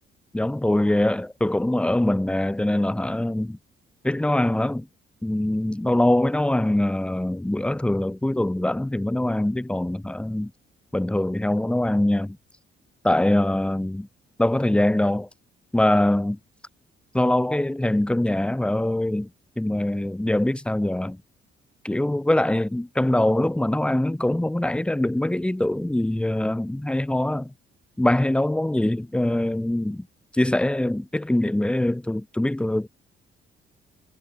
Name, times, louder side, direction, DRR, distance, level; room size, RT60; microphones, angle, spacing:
voice 1, 0.3-3.6 4.0-4.9 5.2-10.5 10.9-12.4 13.0-14.1 14.4-15.3 15.7-16.4 17.1-19.3 19.6-21.2 21.8-27.5 28.0-30.1 30.3-32.9, left 1 dB, 5° left, 0.7 m, -23 dB
cardioid pair, 90°, 20 cm